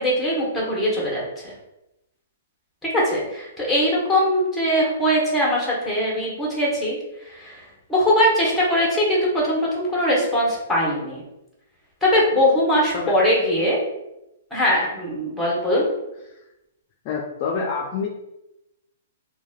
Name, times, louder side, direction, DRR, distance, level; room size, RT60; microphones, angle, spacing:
voice 1, 0.0-1.5 2.9-7.0 7.2-7.6 7.9-11.2 12.0-13.8 14.5-15.9, equal, 5° left, -4 dB, 0.9 m, -21 dB
voice 2, 17.0-18.1, left 5 dB, 40° left, -1 dB, 0.4 m, -26 dB
3.0 x 2.1 x 2.4 m, 0.91 s
hypercardioid pair, 140°, 0 cm